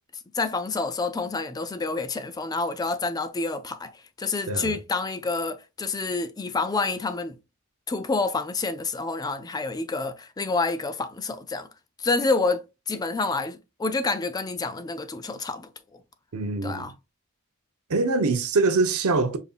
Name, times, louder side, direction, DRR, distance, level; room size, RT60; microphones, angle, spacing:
voice 1, 0.3-3.9 4.2-7.4 7.9-11.7 12.0-15.7 16.6-16.9, left 3 dB, 20° left, 0.3 m, -28 dB
voice 2, 16.3-16.9 17.9-19.4, right 3 dB, 80° right, 0.6 m, -24 dB
5.2 x 2.6 x 2.3 m
head